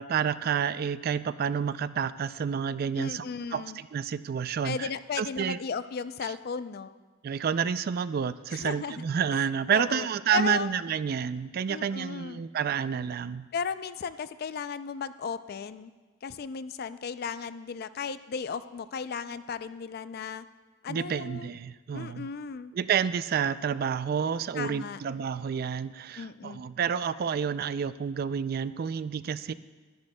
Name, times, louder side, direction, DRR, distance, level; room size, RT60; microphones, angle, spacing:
voice 1, 0.0-3.2 3.5-4.9 5.2-5.6 6.2-6.3 7.2-13.5 20.9-22.3 22.7-29.5, right 7 dB, 50° right, 15 dB, 0.3 m, -29 dB
voice 2, 3.0-3.8 4.6-6.9 8.5-9.0 9.3-10.1 10.3-10.7 11.7-12.4 13.5-15.9 16.2-20.5 20.8-21.5 21.9-22.7 24.5-25.0 26.2-26.6, left 6 dB, 50° left, 13 dB, 0.4 m, -35 dB
21.5 x 10.5 x 2.2 m, 1.4 s
head